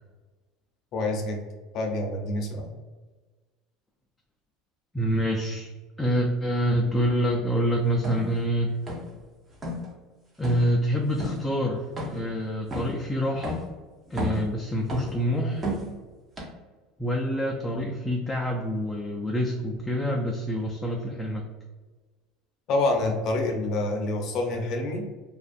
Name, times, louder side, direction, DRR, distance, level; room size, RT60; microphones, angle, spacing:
voice 1, 0.9-1.4 1.7-2.7 22.7-25.0, left 2 dB, 55° left, 2 dB, 0.6 m, -27 dB
voice 2, 4.9-5.7 6.0-8.8 10.4-13.7 14.1-15.8 17.0-21.4, equal, 5° left, -1 dB, 0.3 m, -26 dB
sound 1, 8.0-8.3 8.9-9.2 9.5-9.9 10.4-10.7 11.2-11.4 12.0-12.3 12.7-13.0 13.4-13.7 14.1-14.5 14.9-15.2 15.6-15.9 16.4-16.5, equal, 30° right, 0.8 m, -32 dB
2.5 x 2.3 x 2.5 m, 1.3 s
supercardioid pair, 100°, 0 cm